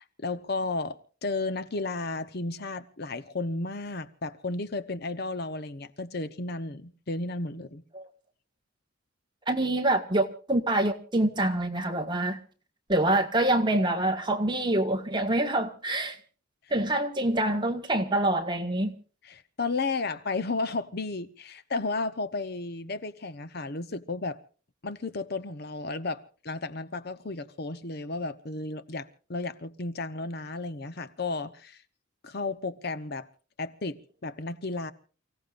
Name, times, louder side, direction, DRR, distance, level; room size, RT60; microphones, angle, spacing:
voice 1, 0.0-7.8 19.2-24.4 24.8-31.8 32.2-33.3 33.6-34.9, left 3 dB, 50° left, 0.9 m, -33 dB
voice 2, 9.5-12.4 12.9-16.2 16.7-19.0, right 1 dB, 20° right, 1.7 m, -26 dB
29.5 x 16.5 x 2.6 m
head